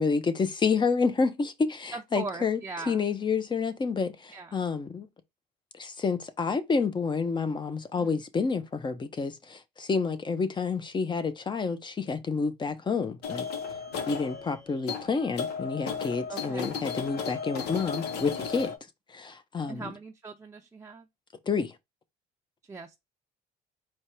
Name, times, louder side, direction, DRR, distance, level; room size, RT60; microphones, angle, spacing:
voice 1, 0.0-2.6 2.9-5.1 5.7-13.5 14.1-18.7 19.1-19.8 21.5-21.7, left 5 dB, 25° left, 0.8 m, -29 dB
voice 2, 1.9-3.1 4.3-4.6 8.0-8.2 16.3-16.7 19.7-21.1 22.7-23.0, right 4 dB, 15° right, 0.5 m, -40 dB
sound 1, 13.2-18.8, left 6 dB, 80° left, 1.0 m, -35 dB
4.6 x 2.3 x 4.4 m
cardioid pair, 110°, 17 cm